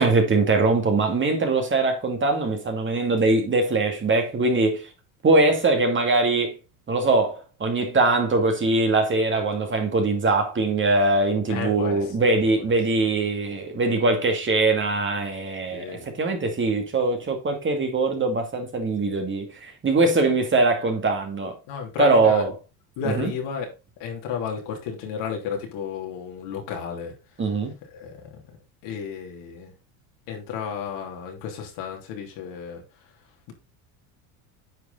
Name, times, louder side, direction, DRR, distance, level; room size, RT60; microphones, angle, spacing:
voice 1, 0.0-4.9 5.2-6.6 6.9-21.6 22.0-22.5 23.0-23.3 27.4-27.7, right 3 dB, 25° right, 2.3 m, -22 dB
voice 2, 11.5-12.0 12.3-12.4 15.7-16.0 21.7-22.4 23.0-23.7 24.0-27.1 27.9-28.1 28.8-29.7 30.3-32.8, left 6 dB, 65° left, 3.3 m, -32 dB
9.5 x 5.0 x 4.0 m
supercardioid pair, 100°, 46 cm